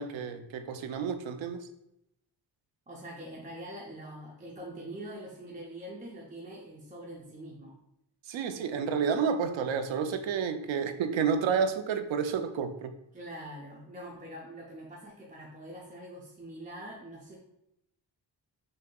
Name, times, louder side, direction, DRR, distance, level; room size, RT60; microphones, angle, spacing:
voice 1, 0.0-1.7 8.3-12.9, right 6 dB, 90° right, 8 dB, 0.5 m, -30 dB
voice 2, 2.9-7.7 13.1-17.4, right 1 dB, 20° right, -3 dB, 0.5 m, -44 dB
6.2 x 2.7 x 2.2 m, 0.82 s
wide cardioid pair, 165°, 44 cm